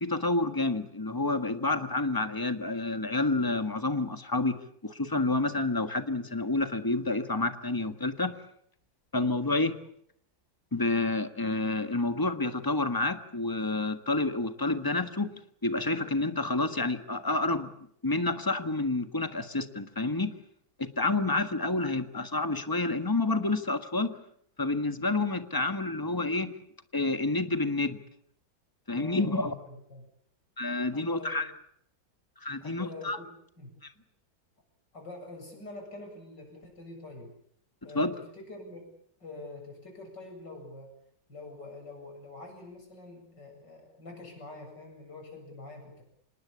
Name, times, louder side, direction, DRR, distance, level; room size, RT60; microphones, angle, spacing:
voice 1, 0.0-4.6 4.8-8.3 9.1-9.8 10.7-15.3 15.6-17.7 18.0-20.3 20.8-24.2 24.6-26.5 26.9-28.0 28.9-29.5 30.6-31.5 32.4-33.2 37.9-38.1, left 2 dB, 10° left, 9 dB, 1.3 m, -29 dB
voice 2, 28.9-30.1 30.9-31.4 32.6-34.0 34.9-37.3 37.8-38.9 39.2-41.0 41.3-46.0, left 2 dB, 65° left, 2 dB, 8.5 m, -45 dB
26.5 x 20.0 x 8.6 m, 0.70 s
omnidirectional pair, 2.0 m